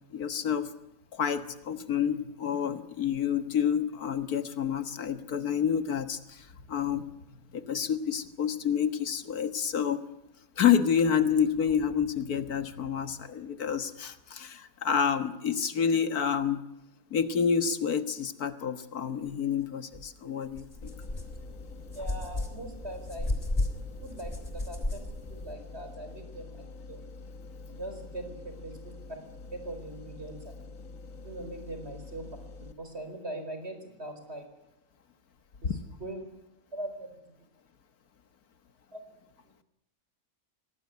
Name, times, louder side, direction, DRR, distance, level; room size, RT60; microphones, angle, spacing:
voice 1, 0.1-0.7 1.1-7.1 7.5-10.0 10.6-16.6 17.1-20.9 35.6-35.8, left 7 dB, 80° left, 10 dB, 1.9 m, -28 dB
sound 1, 19.9-20.0 20.5-25.5, left 1 dB, 25° left, 3.4 m, -34 dB
sound 2, 20.8-32.7, left 3 dB, 60° left, 1.6 m, -46 dB
voice 2, 21.9-23.5 24.0-27.0 27.7-28.9 29.5-30.5 31.2-32.3 32.6-34.4 35.6-36.2 36.7-37.2 38.9-39.0, right 1 dB, 45° right, 7 dB, 4.8 m, -41 dB
24.5 x 18.5 x 9.4 m, 0.87 s
omnidirectional pair, 1.6 m